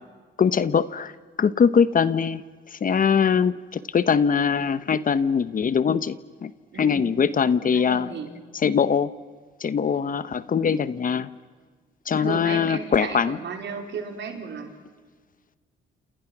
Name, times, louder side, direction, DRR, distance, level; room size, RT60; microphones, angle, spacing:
voice 1, 0.4-1.1 1.4-2.4 2.7-6.5 6.8-8.1 8.6-9.1 9.6-11.3 12.1-13.4, left 6 dB, 45° left, 15 dB, 1.1 m, -22 dB
voice 2, 6.7-7.2 7.7-8.3 12.2-14.7, right 5 dB, 65° right, 4 dB, 4.7 m, -34 dB
29.0 x 28.5 x 6.1 m, 1.5 s
cardioid pair, 90°, 20 cm